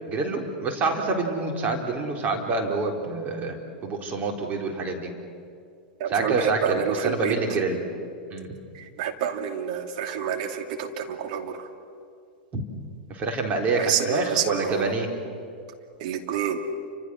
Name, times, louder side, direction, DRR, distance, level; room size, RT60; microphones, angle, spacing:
voice 1, 0.1-5.1 6.1-7.8 8.3-8.5 12.5-12.6 13.1-15.1, right 3 dB, 35° right, 2 dB, 4.1 m, -27 dB
voice 2, 6.0-7.3 8.7-11.7 13.8-14.9 16.0-16.6, right 8 dB, 55° right, 4 dB, 2.6 m, -28 dB
29.0 x 26.0 x 6.4 m, 2.3 s
figure-of-eight pair, 95°, 5 cm